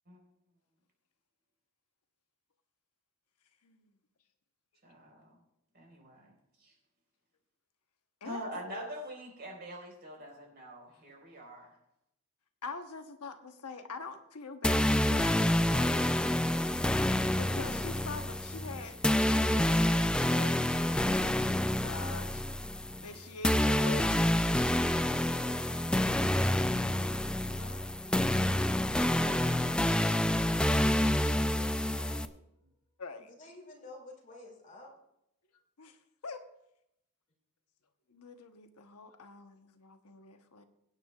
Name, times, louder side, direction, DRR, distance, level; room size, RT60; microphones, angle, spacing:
voice 1, 4.8-5.3 5.7-6.3 6.6-6.7 8.2-11.8 22.8-23.0, equal, 45° right, -1 dB, 4.4 m, -45 dB
voice 2, 8.2-8.9 12.6-15.3 15.7-16.2 17.4-19.0 19.3-22.4 23.0-24.3 26.8-26.9 27.6-27.9 33.0-33.3 35.8-36.0 36.2-36.4 38.1-40.6, left 4 dB, 80° left, 6 dB, 1.0 m, -45 dB
sound 1, 14.6-32.3, left 1 dB, 5° left, 0.3 m, -28 dB
sound 2, 27.5-32.2, left 1 dB, 15° right, 4.8 m, -58 dB
voice 3, 29.0-32.4 33.3-34.9, left 2 dB, 35° left, 0 dB, 2.5 m, -53 dB
23.0 x 9.1 x 2.4 m, 0.81 s
head